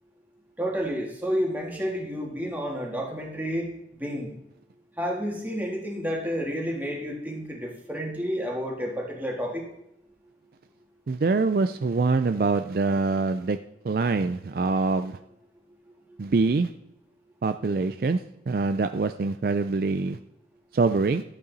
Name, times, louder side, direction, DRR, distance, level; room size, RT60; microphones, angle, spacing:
voice 1, 0.6-3.7 3.9-4.3 5.0-9.6 16.1-16.2, equal, 10° right, -1 dB, 2.0 m, -30 dB
voice 2, 11.1-13.6 13.8-15.2 16.2-16.7 17.4-18.2 18.5-20.2 20.7-21.2, right 3 dB, 55° right, 9 dB, 0.4 m, -24 dB
12.5 x 8.7 x 4.1 m, 0.81 s
head